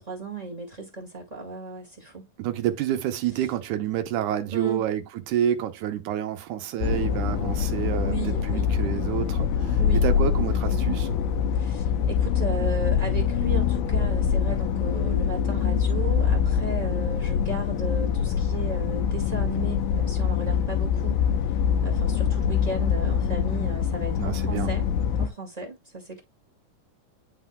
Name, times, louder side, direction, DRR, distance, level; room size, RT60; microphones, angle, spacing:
voice 1, 0.0-2.3 4.5-4.8 7.9-8.8 9.8-10.0 11.5-21.6 21.8-24.9 25.2-26.2, right 3 dB, 20° right, 1.2 m, -35 dB
voice 2, 2.4-11.2 24.2-24.7, right 11 dB, 75° right, 2.2 m, -29 dB
sound 1, 6.8-25.3, left 7 dB, 80° left, 2.1 m, -24 dB
11.0 x 4.0 x 2.3 m
omnidirectional pair, 3.8 m